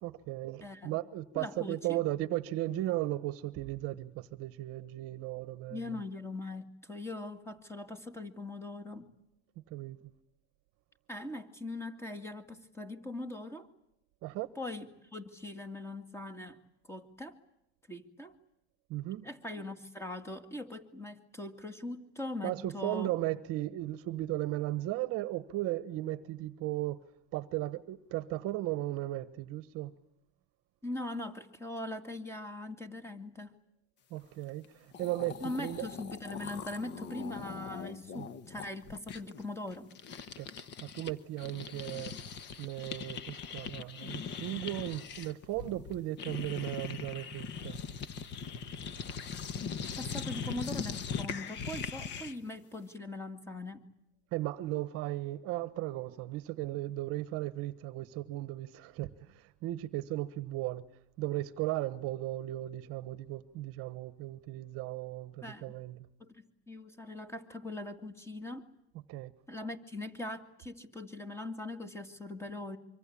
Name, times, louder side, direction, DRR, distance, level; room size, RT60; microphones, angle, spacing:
voice 1, 0.0-5.9 9.7-10.0 14.2-14.5 18.9-19.3 22.4-27.0 27.3-29.9 34.1-35.9 38.2-38.3 40.4-42.1 42.6-47.8 54.3-60.9 61.2-66.0 69.1-69.3, right 16 dB, 40° right, 1.3 m, -36 dB
voice 2, 0.6-1.0 1.3-2.0 5.7-9.1 11.1-13.7 14.6-16.6 16.9-17.4 17.9-18.4 19.2-23.1 30.8-33.5 35.4-39.9 50.0-53.9 65.4-65.7 66.2-68.7 69.5-72.8, left 2 dB, 5° left, 2.2 m, -41 dB
sound 1, 34.6-34.7 34.9-41.1 41.4-52.5, left 6 dB, 30° left, 1.4 m, -41 dB
25.5 x 25.0 x 8.7 m
supercardioid pair, 145°, 35 cm